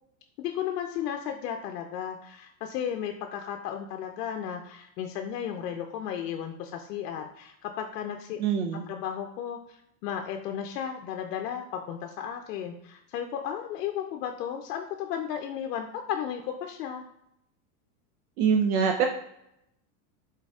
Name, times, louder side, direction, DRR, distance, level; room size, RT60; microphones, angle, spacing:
voice 1, 0.4-8.4 8.9-17.1, left 9 dB, 85° left, 4 dB, 0.6 m, -34 dB
voice 2, 8.4-8.8 18.4-19.1, right 7 dB, 70° right, 4 dB, 0.6 m, -24 dB
4.0 x 4.0 x 2.4 m, 0.80 s
supercardioid pair, 155°, 47 cm